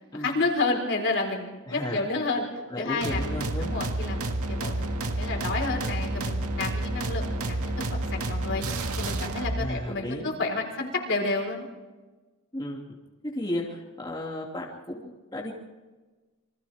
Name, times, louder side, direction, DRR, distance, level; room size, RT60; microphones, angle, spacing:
voice 1, 0.1-2.4 2.8-3.2 3.6-8.6 9.0-11.7, left 3 dB, 60° left, 1 dB, 4.5 m, -30 dB
voice 2, 1.7-2.0 2.7-3.7 9.6-10.3 12.5-12.8 13.2-15.5, left 1 dB, 20° left, -3 dB, 2.7 m, -34 dB
sound 1, 3.0-9.7, right 2 dB, 80° right, 2.1 m, -30 dB
28.5 x 25.0 x 3.6 m, 1.2 s
head